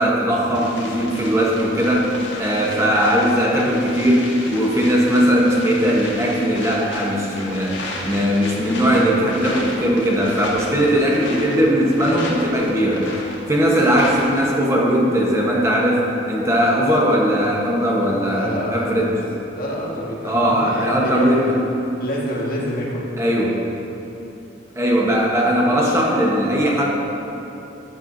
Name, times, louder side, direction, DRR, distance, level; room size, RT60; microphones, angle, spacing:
voice 1, 0.0-13.1 13.5-19.2 20.2-21.7 23.2-23.6 24.7-26.9, equal, 15° right, -4 dB, 1.1 m, -19 dB
sound 1, 0.5-14.5, left 2 dB, 65° left, 1.6 m, -34 dB
voice 2, 18.2-19.0 19.5-21.7 22.0-23.0, equal, 50° left, -4 dB, 1.6 m, -28 dB
12.5 x 9.0 x 2.7 m, 3.0 s
head